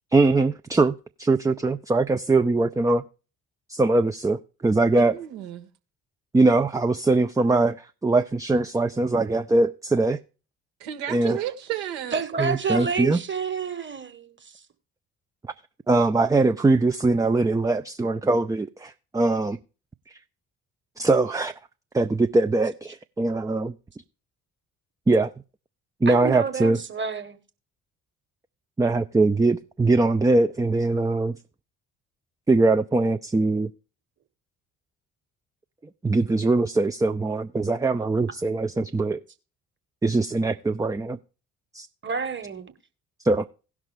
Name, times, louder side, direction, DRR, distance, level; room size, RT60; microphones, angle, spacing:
voice 1, 0.1-3.0 3.7-5.2 6.3-10.2 11.1-11.4 12.4-13.2 15.9-19.6 21.0-21.5 21.9-23.7 25.1-25.3 26.0-26.8 28.8-31.3 32.5-33.7 36.0-39.2 40.0-41.2 41.7-41.9 43.2-43.5, right 2 dB, 10° right, 0.5 m, -22 dB
voice 2, 4.9-5.7 10.8-12.1, right 12 dB, 70° right, 1.4 m, -32 dB
voice 3, 12.1-14.6 26.0-27.4 42.0-42.7, right 5 dB, 30° right, 1.6 m, -29 dB
17.0 x 6.0 x 3.3 m
figure-of-eight pair, 45°, 39 cm